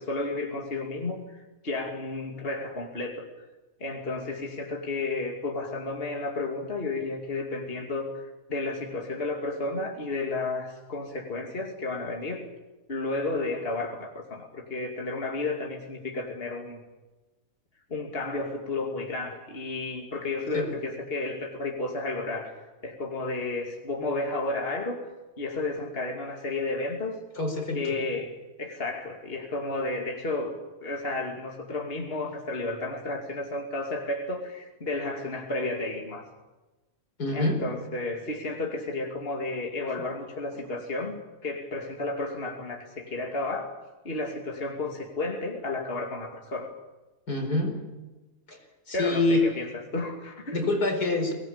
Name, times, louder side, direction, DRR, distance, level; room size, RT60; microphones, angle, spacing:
voice 1, 0.0-3.2 3.8-12.5 12.9-16.8 17.9-22.5 22.8-25.0 25.4-27.2 27.7-28.3 28.6-30.5 30.8-36.3 37.3-41.2 41.4-43.8 44.0-46.7 48.9-50.6, left 2 dB, 35° left, 2 dB, 2.8 m, -32 dB
voice 2, 27.4-28.0 37.2-37.7 47.3-47.9 48.5-48.6 48.9-49.5 50.5-51.3, left 2 dB, 80° left, 3 dB, 5.3 m, -26 dB
24.0 x 19.0 x 8.7 m, 1.1 s
omnidirectional pair, 1.7 m